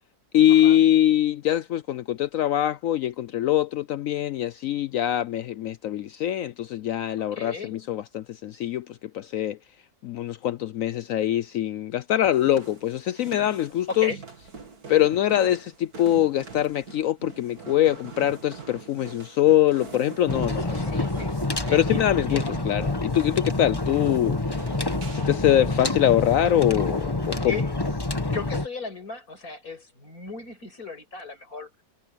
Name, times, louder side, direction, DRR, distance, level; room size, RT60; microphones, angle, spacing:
voice 1, 0.3-8.8 9.1-9.6 10.0-14.1 14.9-20.8 21.7-24.4 25.1-27.5, left 12 dB, 80° left, 0.7 m, -23 dB
voice 2, 7.3-7.8 13.9-14.2 20.6-21.4 21.7-22.6 25.6-25.7 27.4-27.7 28.3-31.7, left 4 dB, 50° left, 6.3 m, -36 dB
sound 1, 12.3-27.0, right 4 dB, 55° right, 3.1 m, -44 dB
sound 2, 20.3-28.7, left 2 dB, 15° left, 1.3 m, -27 dB
omnidirectional pair, 1.9 m